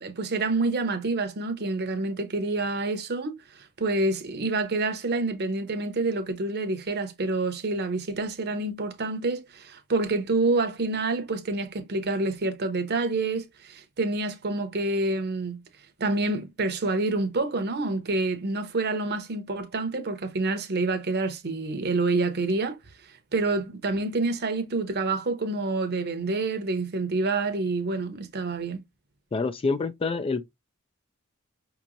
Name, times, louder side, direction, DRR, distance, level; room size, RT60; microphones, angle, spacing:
voice 1, 0.0-15.6 16.0-22.8 23.3-28.8, right 3 dB, 50° right, 0.8 m, -27 dB
voice 2, 29.3-30.5, left 4 dB, 25° left, 0.3 m, -27 dB
5.6 x 2.9 x 2.5 m
head